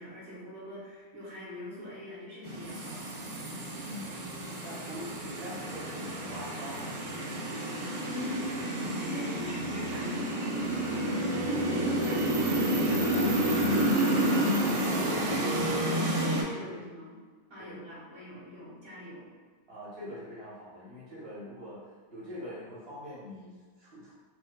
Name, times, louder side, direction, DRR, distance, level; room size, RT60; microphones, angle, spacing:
voice 1, 0.0-3.1 8.0-17.2 17.5-19.3, left 2 dB, 25° right, -9 dB, 1.1 m, -43 dB
sound 1, 2.4-16.4, right 1 dB, 80° right, 1.1 m, -30 dB
voice 2, 3.7-4.2 4.6-6.9 16.6-16.8 17.6-17.8 19.7-21.8 22.1-24.1, left 1 dB, 55° right, -9 dB, 1.2 m, -43 dB
4.4 x 2.4 x 2.2 m, 1.5 s
omnidirectional pair, 1.3 m